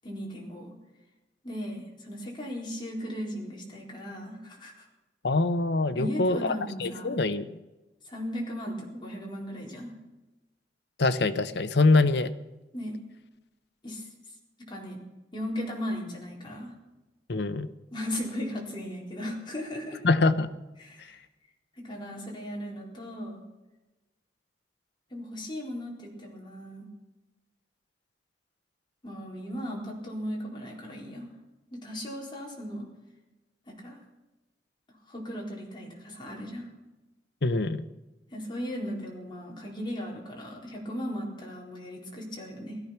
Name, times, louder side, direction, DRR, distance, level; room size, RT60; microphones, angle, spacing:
voice 1, 0.0-0.7 1.4-4.8 5.9-7.2 8.0-9.9 12.7-12.9 13.8-14.1 14.6-15.0 15.3-16.7 17.9-20.0 20.8-21.1 21.8-23.4 25.1-26.9 29.0-31.3 31.7-32.9 33.7-34.0 35.1-36.7 38.3-42.8, equal, 25° left, -2 dB, 4.2 m, -37 dB
voice 2, 5.2-6.5 6.8-7.5 11.0-12.3 17.3-17.7 20.0-20.5 21.0-21.1 37.4-37.9, left 3 dB, 65° left, 12 dB, 0.9 m, -24 dB
17.0 x 13.5 x 5.9 m, 1.1 s
head